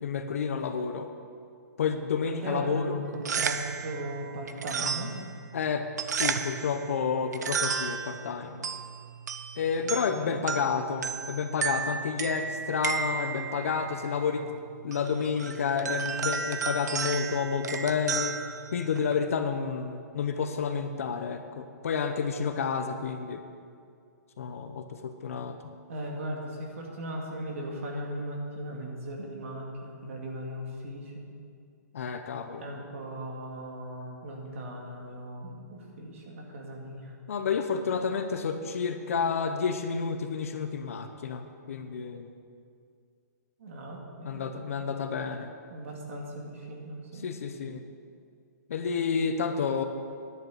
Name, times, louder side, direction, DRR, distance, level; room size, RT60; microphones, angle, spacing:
voice 1, 0.0-1.1 1.8-3.0 5.5-8.7 9.6-14.5 14.8-18.4 18.7-23.4 24.4-25.6 31.9-32.7 37.3-42.3 44.2-45.5 47.2-47.8 48.7-49.8, left 6 dB, 50° left, 8 dB, 0.8 m, -30 dB
voice 2, 2.2-5.1 10.2-10.4 25.9-31.3 32.5-37.1 43.6-44.5 44.8-45.0 45.7-47.3 47.6-47.7, right 1 dB, 45° right, 0 dB, 2.2 m, -38 dB
sound 1, 3.1-19.3, right 6 dB, 70° right, 0.8 m, -34 dB
10.5 x 6.7 x 8.5 m, 2.3 s
hypercardioid pair, 170°, 10 cm